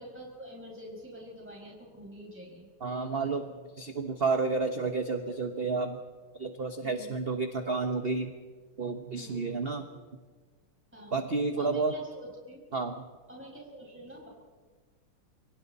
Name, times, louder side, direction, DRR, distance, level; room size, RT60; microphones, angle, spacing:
voice 1, 0.0-2.7 6.8-7.2 9.1-9.5 10.9-11.3 11.5-12.6 13.3-14.3, equal, 5° right, -3 dB, 5.9 m, -46 dB
voice 2, 2.8-6.0 6.4-8.3 8.8-9.8 11.1-11.9 12.7-13.0, right 4 dB, 35° right, 6 dB, 1.2 m, -31 dB
28.5 x 24.5 x 4.2 m, 1.4 s
omnidirectional pair, 2.0 m